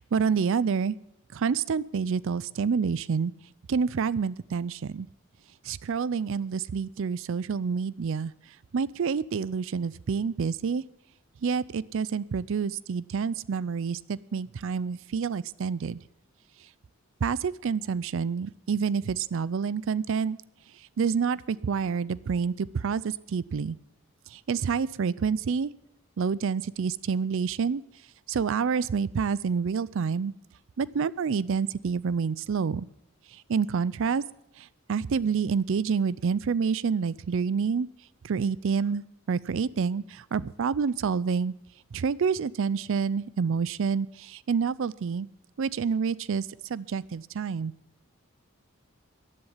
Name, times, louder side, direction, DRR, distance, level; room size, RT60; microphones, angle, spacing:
voice 1, 0.1-0.9 1.3-3.3 3.7-5.1 5.7-8.3 8.7-10.8 11.4-16.0 17.2-20.4 21.0-23.8 24.5-25.7 26.2-27.8 28.3-30.3 30.8-32.9 33.5-34.2 34.9-37.9 38.2-41.5 41.9-45.3 45.6-46.5 46.7-47.7, right 6 dB, 65° right, 20 dB, 0.4 m, -28 dB
15.0 x 11.0 x 5.6 m, 0.84 s
head